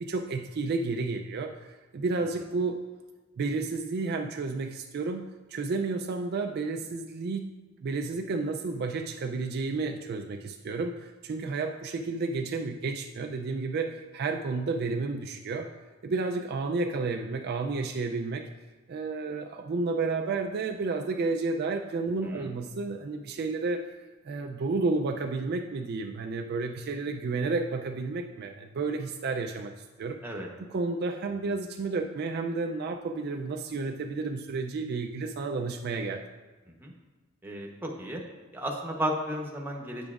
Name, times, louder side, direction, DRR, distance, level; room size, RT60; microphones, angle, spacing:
voice 1, 0.0-2.8 3.4-7.5 7.8-15.7 16.0-18.5 18.9-23.8 24.2-30.2 30.6-36.2, right 3 dB, 50° right, 3 dB, 0.4 m, -31 dB
voice 2, 37.4-38.2 38.5-40.1, equal, 10° right, 0 dB, 0.9 m, -33 dB
8.7 x 7.0 x 2.4 m, 1.3 s
head